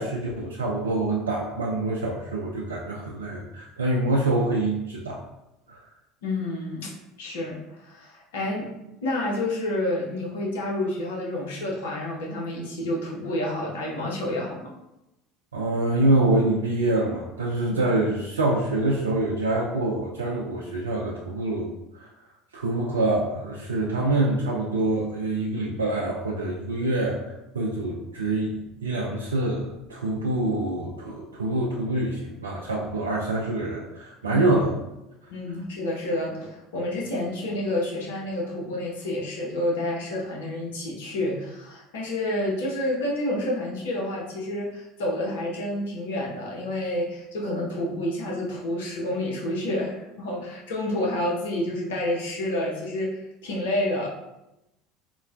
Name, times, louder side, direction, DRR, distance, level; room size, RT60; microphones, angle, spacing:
voice 1, 0.0-5.2 5.7-5.8 15.5-22.1 22.5-27.2 27.5-34.7, right 2 dB, 85° right, -3 dB, 0.3 m, -25 dB
voice 2, 6.2-8.8 9.0-14.7 34.3-34.4 35.3-54.1, left 1 dB, 75° left, -2 dB, 0.6 m, -29 dB
3.8 x 2.1 x 2.3 m, 0.92 s
hypercardioid pair, 70°, 0 cm